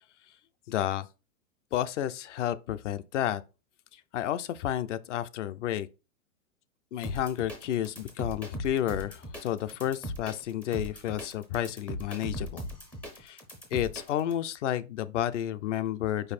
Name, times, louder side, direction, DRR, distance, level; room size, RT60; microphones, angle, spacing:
voice 1, 0.7-1.1 1.7-3.4 3.9-5.9 6.9-12.7 13.2-13.4 13.7-16.3, left 11 dB, 55° left, 0.6 m, -31 dB
sound 1, 7.0-14.3, equal, 5° left, 0.4 m, -39 dB
5.5 x 4.2 x 4.1 m
hypercardioid pair, 145°, 42 cm